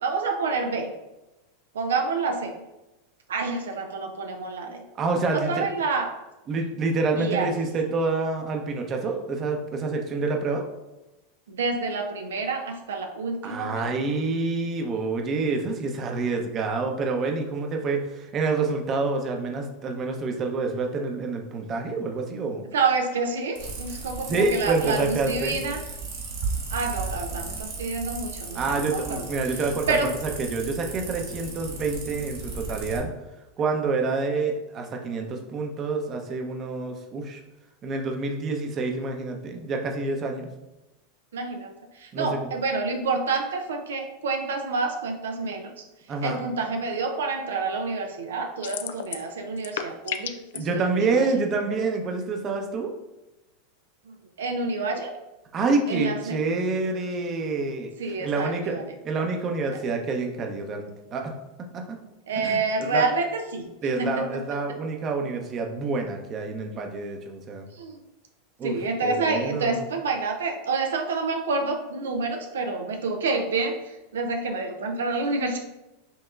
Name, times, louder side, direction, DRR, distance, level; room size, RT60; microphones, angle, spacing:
voice 1, 0.0-0.9 1.7-2.6 3.3-4.8 5.3-6.1 7.2-7.5 11.5-13.9 22.7-25.8 26.7-29.3 29.9-30.1 41.3-45.7 46.2-51.3 54.1-55.1 55.9-56.4 58.0-58.8 59.7-59.8 62.3-63.7 64.0-64.4 65.2-65.3 67.7-68.0 68.6-75.6, right 4 dB, 85° right, 4 dB, 0.5 m, -28 dB
voice 2, 5.0-5.6 6.5-10.7 13.4-22.6 24.2-25.6 28.5-30.0 30.4-33.1 33.6-37.4 37.8-40.5 42.1-42.3 46.1-46.4 50.5-52.9 55.5-57.9 58.2-61.3 61.7-62.0 62.4-63.1 63.8-67.6 68.6-68.8 69.0-69.8, right 3 dB, 35° right, 3 dB, 0.7 m, -27 dB
sound 1, 23.6-33.0, right 4 dB, 70° right, 1.2 m, -35 dB
sound 2, 48.6-49.3 49.6-50.6, left 10 dB, 80° left, 0.3 m, -32 dB
5.4 x 2.8 x 2.4 m, 1.0 s
hypercardioid pair, 105°, 0 cm